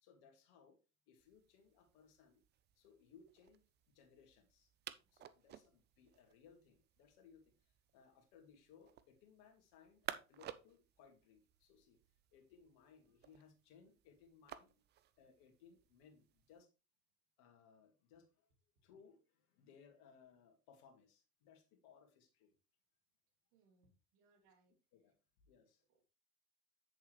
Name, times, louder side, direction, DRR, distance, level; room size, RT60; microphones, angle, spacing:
voice 1, 0.0-0.8 1.1-2.4 2.8-3.6 3.9-4.7 5.1-12.0 12.3-14.8 15.2-16.7 17.4-18.5 18.8-22.5 24.9-25.1 25.5-26.1, left 6 dB, 55° left, 4 dB, 2.2 m, -65 dB
sound 1, 1.2-16.6, right 11 dB, 25° right, 0.4 m, -56 dB
voice 2, 23.5-24.7 25.9-26.1, right 3 dB, 55° right, 3 dB, 2.5 m, -74 dB
8.0 x 7.0 x 3.2 m, 0.30 s
figure-of-eight pair, 75°, 45 cm